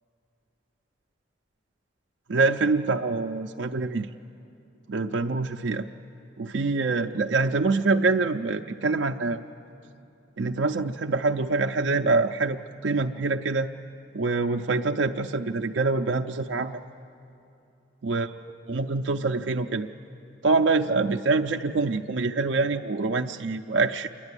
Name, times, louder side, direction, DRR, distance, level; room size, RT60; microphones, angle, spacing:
voice 1, 2.3-4.1 4.9-5.9 6.4-9.4 10.4-13.7 14.1-16.8 18.0-18.3 18.7-19.9 20.4-24.1, right 3 dB, 65° right, 4 dB, 0.5 m, -25 dB
28.0 x 11.5 x 9.7 m, 2.7 s
head